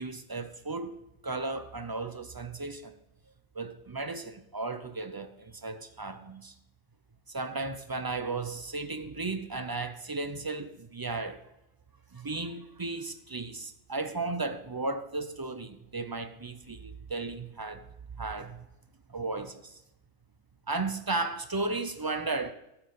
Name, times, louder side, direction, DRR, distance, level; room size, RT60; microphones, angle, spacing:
voice 1, 0.0-2.9 3.5-6.5 7.3-11.4 12.1-17.9 18.2-18.7 19.1-19.8 20.7-22.5, right 3 dB, 35° right, 0.4 m, -35 dB
13.0 x 7.2 x 5.4 m
omnidirectional pair, 1.2 m